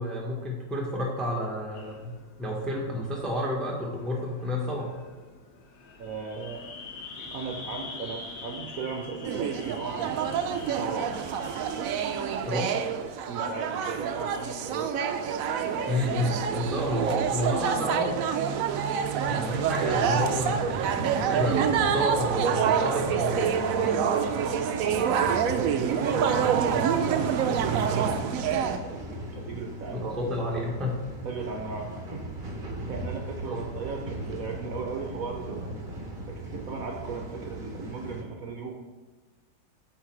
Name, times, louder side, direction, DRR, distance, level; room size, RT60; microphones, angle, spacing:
voice 1, 0.0-2.1 2.4-5.0 12.5-12.7 15.9-18.2 19.2-23.9 29.9-31.0 33.5-33.6, equal, ahead, -1 dB, 0.8 m, -30 dB
sound 1, 1.7-16.4, left 4 dB, 75° left, 1.5 m, -46 dB
voice 2, 6.0-6.6 7.2-11.1 13.3-15.3 24.3-30.7 31.2-35.8 36.3-38.7, right 5 dB, 65° right, 1 dB, 0.9 m, -37 dB
sound 2, 9.2-28.8, right 7 dB, 90° right, 0.7 m, -27 dB
sound 3, 19.1-38.2, right 1 dB, 40° right, 0.8 m, -39 dB
8.3 x 3.9 x 4.6 m, 1.3 s
omnidirectional pair, 2.0 m